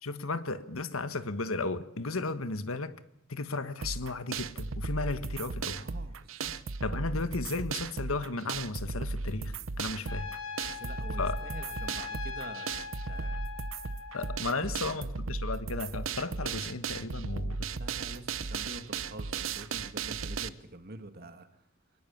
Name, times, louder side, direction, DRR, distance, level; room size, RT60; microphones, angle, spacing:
voice 1, 0.0-2.9 3.3-5.9 6.8-10.3 11.2-11.4 14.1-17.7, left 3 dB, 90° left, 1.5 m, -34 dB
sound 1, 3.8-20.5, right 4 dB, 70° right, 0.9 m, -36 dB
voice 2, 5.8-6.5 10.6-12.7 13.1-13.4 14.5-15.1 17.8-21.5, right 2 dB, 50° right, 2.0 m, -46 dB
Trumpet, 10.1-14.4, left 5 dB, 70° left, 2.6 m, -41 dB
24.0 x 20.5 x 7.3 m
head